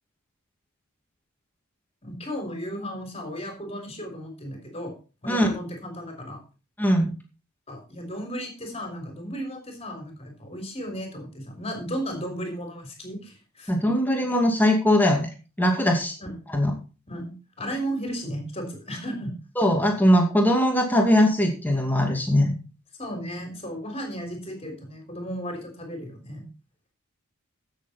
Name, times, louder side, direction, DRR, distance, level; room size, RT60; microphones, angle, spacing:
voice 1, 2.0-4.9 5.2-6.4 7.7-13.7 16.2-16.3 17.1-19.3 23.0-26.5, equal, 30° left, 3 dB, 3.6 m, -34 dB
voice 2, 6.8-7.1 13.7-15.3 15.6-16.1 16.5-16.7 19.6-22.5, equal, 10° left, 1 dB, 2.4 m, -20 dB
15.0 x 7.0 x 4.3 m, 0.35 s
head